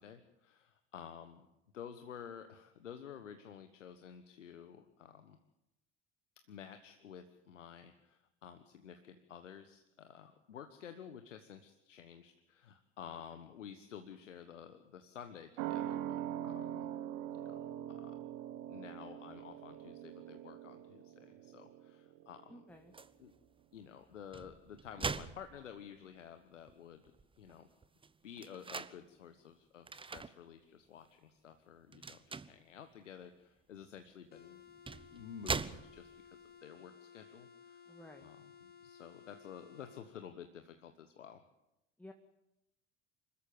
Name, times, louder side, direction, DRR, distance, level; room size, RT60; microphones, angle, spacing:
voice 1, 0.0-1.5 1.7-5.4 6.5-16.9 17.3-18.1 18.7-22.6 23.2-23.3 23.7-27.0 27.4-27.7 28.2-34.6 35.1-41.4, left 8 dB, 85° left, 8 dB, 1.3 m, -52 dB
sound 1, 15.6-22.6 22.9-23.0, right 11 dB, 60° right, 1.5 m, -43 dB
voice 2, 22.5-22.9 37.9-38.3 42.0-42.1, left 1 dB, 5° left, 5 dB, 2.0 m, -54 dB
sound 2, 22.9-23.2 24.1-26.1 26.7-26.8 27.0-29.0 29.9-30.3 30.8-31.1 31.9-32.6 34.0-34.1 34.7-36.3, right 4 dB, 15° right, 0.9 m, -42 dB
sound 3, 34.3-40.1, left 7 dB, 25° left, 2.8 m, -58 dB
25.5 x 14.0 x 9.4 m, 0.91 s
figure-of-eight pair, 65°, 36 cm